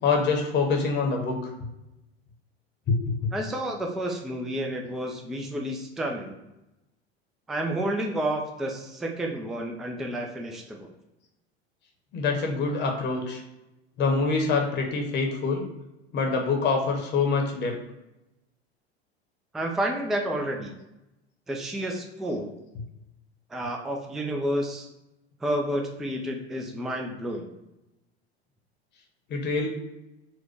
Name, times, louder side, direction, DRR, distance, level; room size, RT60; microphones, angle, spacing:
voice 1, 0.0-1.5 2.9-3.3 12.1-13.4 14.0-15.7 16.1-17.8 29.3-29.7, left 4 dB, 35° left, 2 dB, 0.9 m, -25 dB
voice 2, 3.3-6.4 7.5-10.9 19.5-20.7 21.5-22.5 23.5-24.9 25.4-27.5, right 1 dB, ahead, 2 dB, 0.3 m, -30 dB
4.4 x 2.2 x 4.4 m, 0.94 s
figure-of-eight pair, 75°, 33 cm